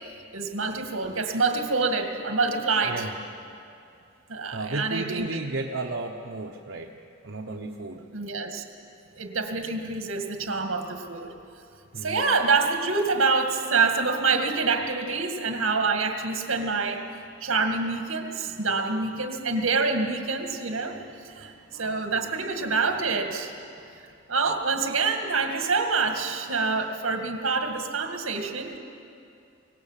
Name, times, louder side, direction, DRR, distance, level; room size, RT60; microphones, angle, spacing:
voice 1, 0.3-3.0 4.3-5.3 8.1-8.6 9.2-11.3 12.0-17.0 17.4-21.0 21.3-23.5 24.3-28.8, right 4 dB, 90° right, 5 dB, 2.0 m, -26 dB
voice 2, 2.8-3.2 4.5-6.9 7.2-8.0 11.9-12.3 21.3-23.2, right 2 dB, 65° right, 1 dB, 1.1 m, -35 dB
24.0 x 18.5 x 7.4 m, 2.6 s
head